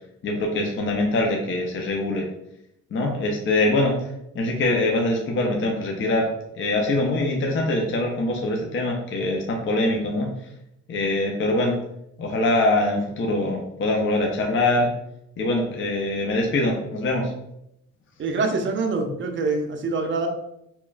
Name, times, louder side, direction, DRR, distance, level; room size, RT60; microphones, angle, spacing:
voice 1, 0.2-2.3 2.9-4.1 4.3-6.3 6.6-10.3 10.9-11.8 12.2-14.9 15.4-17.3, left 2 dB, 40° left, 1 dB, 0.5 m, -23 dB
voice 2, 18.2-20.3, right 3 dB, 40° right, 4 dB, 0.5 m, -25 dB
3.0 x 2.2 x 2.3 m, 0.80 s
cardioid pair, 90°, 30 cm